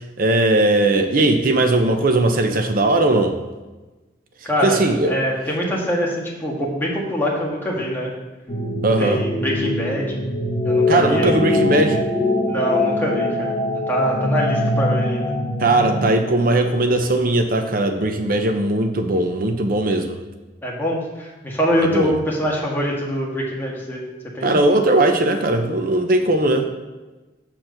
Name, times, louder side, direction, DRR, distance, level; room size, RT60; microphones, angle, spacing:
voice 1, 0.2-3.4 4.6-5.1 8.8-9.2 10.9-12.1 15.6-20.2 21.8-22.1 24.4-26.7, right 2 dB, 50° right, 6 dB, 0.7 m, -18 dB
voice 2, 4.4-8.1 9.0-10.2 10.6-11.4 12.5-13.6 13.9-15.3 20.6-24.1 24.3-24.6, equal, 10° left, -4 dB, 1.7 m, -24 dB
sound 1, 8.5-16.1, left 1 dB, 35° left, 1.5 m, -22 dB
7.5 x 4.5 x 6.5 m, 1.2 s
head